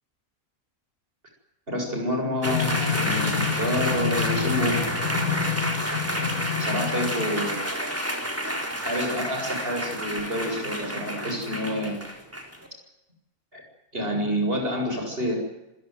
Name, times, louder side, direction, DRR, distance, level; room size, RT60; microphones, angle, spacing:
voice 1, 1.7-4.8 6.6-7.6 8.7-12.0 13.5-13.6 13.9-15.4, equal, 40° right, 3 dB, 7.9 m, -28 dB
sound 1, 2.4-7.6, left 7 dB, 85° left, 2.8 m, -28 dB
sound 2, 2.4-12.7, equal, 10° right, 4.2 m, -30 dB
27.0 x 17.0 x 9.6 m, 0.95 s
omnidirectional pair, 1.5 m